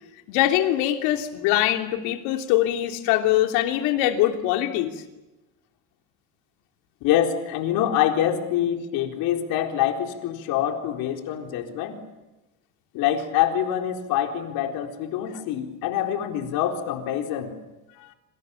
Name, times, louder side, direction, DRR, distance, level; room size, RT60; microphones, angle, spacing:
voice 1, 0.3-5.0, left 13 dB, 85° left, 4 dB, 3.2 m, -23 dB
voice 2, 7.0-12.0 12.9-17.5, left 10 dB, 70° left, 3 dB, 4.2 m, -25 dB
27.5 x 27.0 x 7.2 m, 1.1 s
cardioid pair, 140°, 38 cm